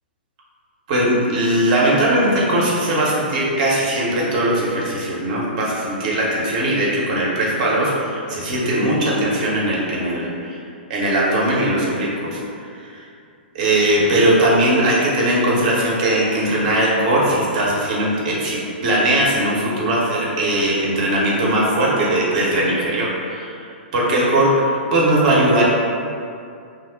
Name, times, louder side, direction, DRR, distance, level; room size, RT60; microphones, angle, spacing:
voice 1, 0.9-10.6 10.9-12.4 12.9-13.1 13.5-25.6, right 1 dB, 45° right, -5 dB, 0.8 m, -19 dB
2.8 x 2.0 x 3.8 m, 2.4 s
figure-of-eight pair, 110°, 6 cm